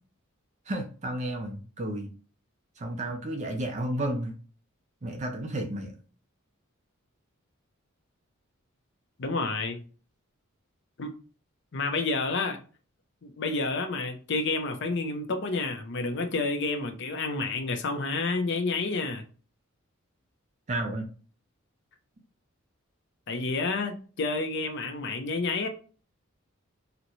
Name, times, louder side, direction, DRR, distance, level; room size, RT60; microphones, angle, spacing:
voice 1, 0.7-2.1 2.8-4.3 5.0-5.9 20.7-21.1, right 1 dB, 35° right, 0.5 m, -32 dB
voice 2, 9.2-9.8 11.0-11.1 11.7-12.6 13.2-19.2 23.3-25.7, left 3 dB, 55° left, 0.6 m, -29 dB
3.9 x 2.1 x 3.0 m
head